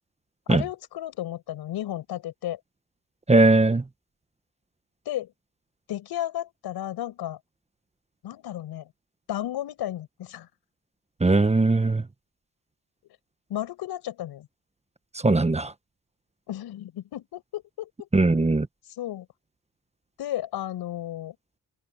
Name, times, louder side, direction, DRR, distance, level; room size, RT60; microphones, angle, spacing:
voice 1, 0.5-2.6 5.1-5.3 5.9-7.4 8.2-8.9 9.3-10.5 13.5-14.5 16.5-18.1 19.0-19.3 20.2-21.4, left 12 dB, 80° left, 6.0 m, -33 dB
voice 2, 3.3-3.8 11.2-12.0 15.2-15.7 18.1-18.7, right 2 dB, 15° right, 1.2 m, -19 dB
supercardioid pair, 60°, 38 cm